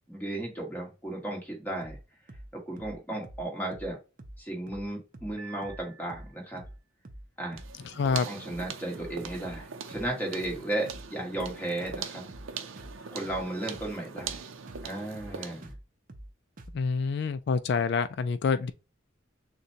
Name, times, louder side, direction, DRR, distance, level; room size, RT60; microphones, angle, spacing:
voice 1, 0.1-2.0 2.5-4.0 4.4-6.6 7.4-7.6 8.2-12.2 13.1-14.4 14.8-15.7, right 1 dB, 10° left, 1.6 m, -35 dB
sound 1, 1.8-2.0 2.3-2.5 2.8-3.0 3.2-3.5 3.7-3.9 4.2-4.4 4.7-4.9 5.1-5.4 5.6-5.8 6.1-6.3 6.6-6.8 7.1-7.3 7.5-7.7 8.0-8.2 8.5-8.7 9.0-9.7 9.9-10.1 10.4-10.6 10.9-11.1 11.3-11.6 11.8-12.0 12.3-12.5 12.8-13.0 13.2-13.5 13.7-13.9 14.2-14.4 14.7-14.9 15.1-15.4 15.6-15.8 16.1-16.3 16.6-16.8, right 1 dB, 45° right, 0.6 m, -46 dB
Piano, 5.4-6.7, right 6 dB, 20° right, 1.2 m, -50 dB
sound 2, 7.5-15.7, right 6 dB, 85° right, 0.6 m, -41 dB
voice 2, 7.8-8.3 16.7-18.7, left 5 dB, 55° left, 0.3 m, -27 dB
6.4 x 2.2 x 2.8 m
head